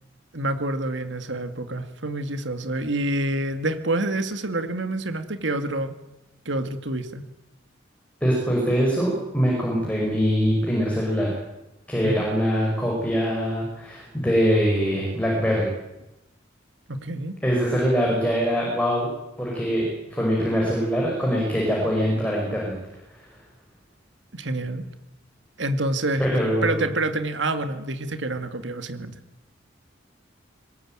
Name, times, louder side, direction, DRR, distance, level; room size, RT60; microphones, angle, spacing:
voice 1, 0.3-5.9 6.5-7.2 12.0-12.2 16.9-17.3 24.3-24.8 25.6-26.2 26.6-29.2, right 2 dB, 70° right, 9 dB, 2.4 m, -27 dB
voice 2, 8.2-11.4 11.9-15.7 17.4-19.1 19.4-22.8 23.1-23.2 26.2-26.8, equal, 5° left, -3 dB, 5.9 m, -23 dB
22.5 x 20.5 x 9.1 m, 0.96 s
head